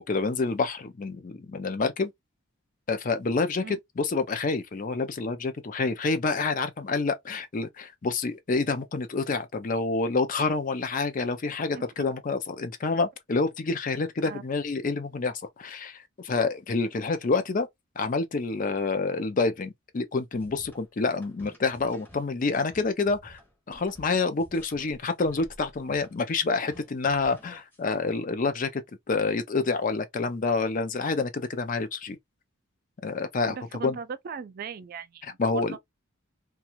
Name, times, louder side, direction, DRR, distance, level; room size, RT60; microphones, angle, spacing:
voice 1, 0.0-2.1 2.9-17.7 18.0-23.4 23.7-32.2 33.0-33.6 33.8-34.0 35.4-35.8, left 4 dB, 40° left, 0.4 m, -28 dB
sound 1, 20.3-28.1, equal, 10° left, 0.7 m, -51 dB
voice 2, 33.5-35.8, right 6 dB, 45° right, 0.3 m, -38 dB
2.5 x 2.3 x 2.9 m
head